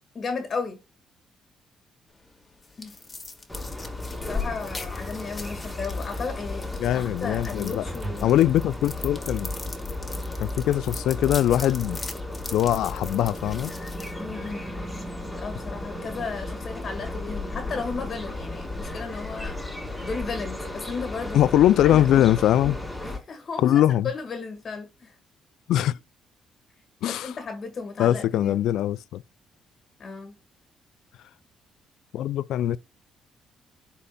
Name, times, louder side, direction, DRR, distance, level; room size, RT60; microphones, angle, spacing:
voice 1, 0.1-0.8 2.8-3.0 4.3-8.4 14.2-14.6 15.4-19.6 20.0-21.5 21.8-22.2 23.0-25.1 27.1-28.6 30.0-30.3, left 4 dB, 45° left, 1.6 m, -34 dB
sound 1, 2.1-14.8, left 3 dB, 25° left, 1.5 m, -42 dB
sound 2, 3.5-23.2, left 2 dB, 5° left, 2.3 m, -34 dB
voice 2, 6.8-7.8 8.2-9.5 10.4-12.0 12.5-13.7 21.3-22.8 23.6-24.1 25.7-26.0 27.0-27.3 28.0-29.2 32.1-32.8, left 12 dB, 80° left, 0.3 m, -22 dB
sound 3, 7.9-10.3, right 3 dB, 20° right, 2.2 m, -42 dB
11.0 x 4.2 x 2.2 m
cardioid pair, 90°, 0 cm